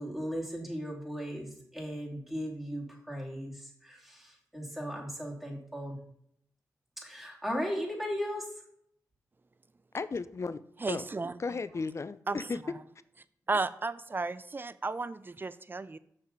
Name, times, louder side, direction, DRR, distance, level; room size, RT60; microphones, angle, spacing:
voice 1, 0.0-6.0 7.0-8.5, equal, 5° right, -1 dB, 2.8 m, -37 dB
voice 2, 9.9-10.6 10.9-11.1 11.4-12.6, left 4 dB, 45° left, 14 dB, 0.5 m, -34 dB
voice 3, 10.8-11.4 12.3-12.7 13.5-16.0, right 3 dB, 30° right, 16 dB, 0.5 m, -34 dB
6.6 x 5.5 x 5.2 m, 0.70 s
cardioid pair, 50°, 7 cm